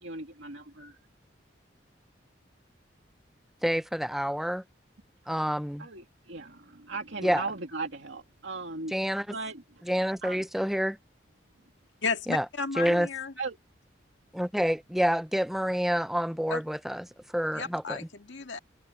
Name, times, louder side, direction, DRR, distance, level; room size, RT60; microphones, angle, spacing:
voice 1, 0.0-1.0 5.8-9.9 10.2-10.4 13.4-13.6, right 3 dB, 75° right, 2.3 m, -38 dB
voice 2, 3.6-4.6 5.3-5.9 7.2-7.4 8.9-9.2 9.9-11.0 12.3-12.5 12.8-13.1 14.3-17.1 17.3-18.0, equal, ahead, 0.3 m, -28 dB
voice 3, 12.0-13.3 16.5-16.6 17.5-18.6, left 4 dB, 80° left, 1.8 m, -33 dB
head